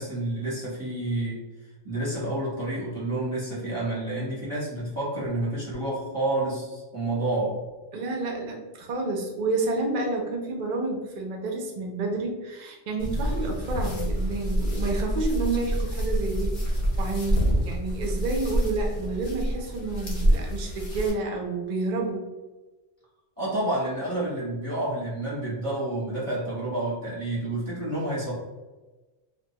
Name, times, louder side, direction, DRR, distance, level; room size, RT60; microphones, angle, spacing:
voice 1, 0.0-1.4 1.8-7.6 23.4-28.3, right 1 dB, 15° right, -8 dB, 0.8 m, -29 dB
voice 2, 7.9-22.2, right 3 dB, 60° right, 1 dB, 0.4 m, -30 dB
sound 1, 13.0-21.1, equal, 50° left, 0.7 m, -27 dB
2.2 x 2.2 x 2.7 m, 1.2 s
omnidirectional pair, 1.3 m